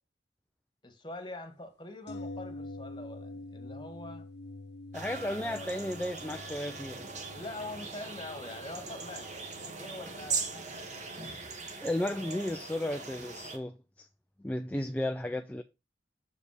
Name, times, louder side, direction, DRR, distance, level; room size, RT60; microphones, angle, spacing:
voice 1, 0.8-4.3 5.2-5.7 7.3-9.4 9.8-10.6 15.3-15.5, left 2 dB, 25° left, 1.5 m, -44 dB
sound 1, 2.1-11.9 12.2-12.3, left 2 dB, 65° left, 0.7 m, -47 dB
voice 2, 4.9-7.1 11.8-14.1 14.4-15.6, left 1 dB, 10° left, 0.4 m, -34 dB
sound 2, 4.9-13.6, right 4 dB, 40° right, 1.3 m, -40 dB
6.7 x 5.2 x 4.8 m
head